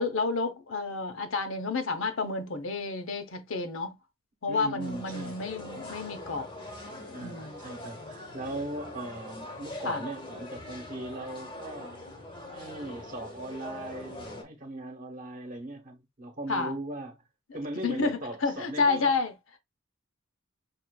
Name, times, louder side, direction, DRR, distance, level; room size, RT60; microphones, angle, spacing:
voice 1, 0.0-4.0 4.4-6.5 6.8-7.6 8.0-8.1 9.8-10.0 16.5-16.7 17.8-19.3, left 4 dB, 70° left, 0.7 m, -30 dB
voice 2, 4.5-5.4 7.1-12.0 12.5-17.2 17.5-19.2, right 1 dB, 40° right, 1.0 m, -39 dB
sound 1, 4.8-14.4, left 1 dB, 25° left, 0.8 m, -43 dB
5.5 x 2.5 x 2.2 m
head